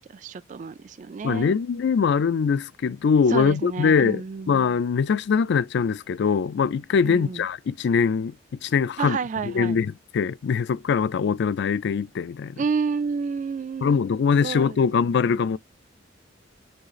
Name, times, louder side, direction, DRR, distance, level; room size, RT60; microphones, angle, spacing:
voice 1, 0.1-1.6 3.3-4.6 7.0-7.5 9.0-9.8 12.6-14.0 14.4-15.4, right 5 dB, 40° right, 0.3 m, -30 dB
voice 2, 1.2-8.3 8.6-9.2 9.5-12.6 13.8-15.6, left 6 dB, 60° left, 0.3 m, -22 dB
6.3 x 2.5 x 2.9 m
head